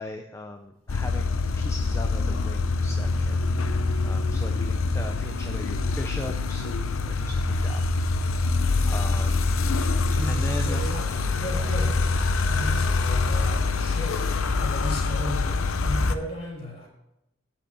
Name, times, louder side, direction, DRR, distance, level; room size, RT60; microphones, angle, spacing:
voice 1, 0.0-3.4 4.0-7.8 8.8-9.6 10.2-10.8, left 1 dB, 15° left, 5 dB, 0.4 m, -38 dB
sound 1, 0.9-16.2, left 3 dB, 90° left, 0.6 m, -25 dB
voice 2, 10.2-12.0 12.5-14.2 14.6-16.9, left 1 dB, 30° left, -1 dB, 3.5 m, -35 dB
8.9 x 6.1 x 6.8 m, 0.88 s
head